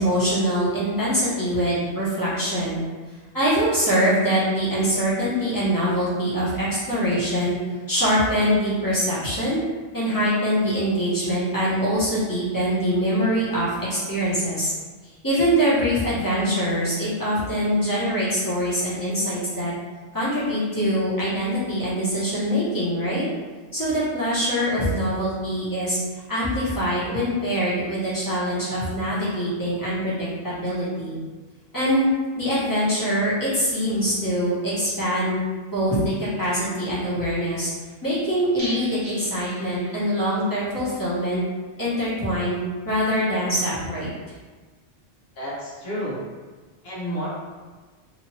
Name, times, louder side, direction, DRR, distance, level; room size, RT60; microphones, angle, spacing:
voice 1, 0.0-2.8 3.3-7.6 7.9-9.6 9.9-14.7 15.2-19.7 20.1-23.2 23.7-26.0 26.3-31.2 31.7-32.1 32.3-35.4 35.7-37.7 38.0-41.4 41.8-42.6 42.8-44.1, equal, 20° left, -10 dB, 1.0 m, -23 dB
sound 1, 38.6-40.4 40.6-40.7 41.1-41.2, equal, 35° right, 0.9 m, -37 dB
voice 2, 45.4-46.2 46.8-47.3, equal, 60° left, -6 dB, 1.1 m, -30 dB
2.9 x 2.5 x 2.9 m, 1.4 s
omnidirectional pair, 1.2 m